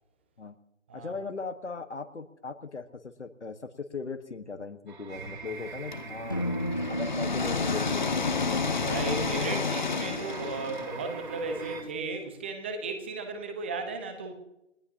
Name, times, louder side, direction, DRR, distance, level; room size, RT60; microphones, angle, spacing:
voice 1, 0.9-6.4 6.9-8.3, left 4 dB, 65° left, 8 dB, 1.4 m, -38 dB
sound 1, 4.9-11.8, right 4 dB, 40° right, 3.8 m, -42 dB
sound 2, 5.9-11.8, left 5 dB, 35° left, 0.9 m, -31 dB
sound 3, 6.3-10.4, right 1 dB, 15° left, 0.6 m, -35 dB
voice 2, 8.8-14.3, right 3 dB, 10° right, 7 dB, 0.9 m, -35 dB
30.0 x 17.0 x 2.8 m, 0.91 s
figure-of-eight pair, 150°, 38 cm